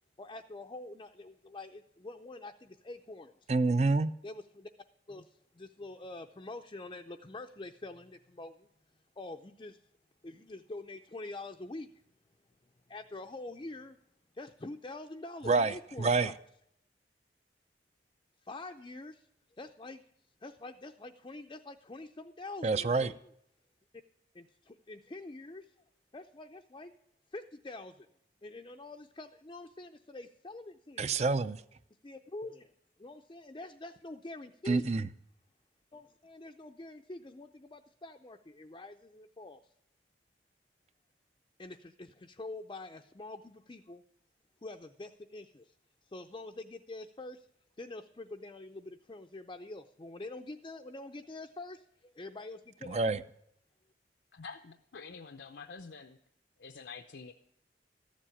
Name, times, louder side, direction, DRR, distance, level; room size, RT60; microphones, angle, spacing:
voice 1, 0.2-3.5 4.2-4.7 5.1-8.7 9.2-9.8 10.2-11.9 12.9-14.0 14.3-16.4 18.4-19.3 19.6-20.0 20.4-23.1 24.3-25.7 26.1-26.9 27.3-28.1 28.4-31.2 32.0-32.7 33.0-34.9 35.9-39.6 41.6-44.0 44.6-45.7 46.1-47.5 47.8-53.0, left 2 dB, 25° left, 0.5 m, -45 dB
voice 2, 3.5-4.1 15.4-16.3 22.6-23.1 31.0-31.6 34.7-35.1 52.9-53.2, right 3 dB, 40° right, 0.5 m, -27 dB
voice 3, 54.3-56.2 56.6-57.3, left 5 dB, 75° left, 0.6 m, -47 dB
13.5 x 7.5 x 9.9 m
head